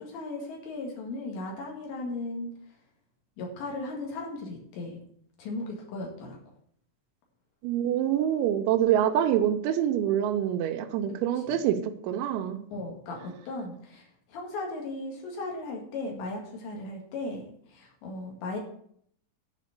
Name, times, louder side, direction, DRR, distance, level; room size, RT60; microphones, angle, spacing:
voice 1, 0.0-2.5 3.4-5.0 5.4-6.4 11.3-11.6 12.7-17.4 17.7-18.6, left 2 dB, 70° left, 0 dB, 4.1 m, -36 dB
voice 2, 7.6-12.6, right 10 dB, 85° right, 4 dB, 3.1 m, -26 dB
10.5 x 5.1 x 8.0 m, 0.65 s
omnidirectional pair, 5.6 m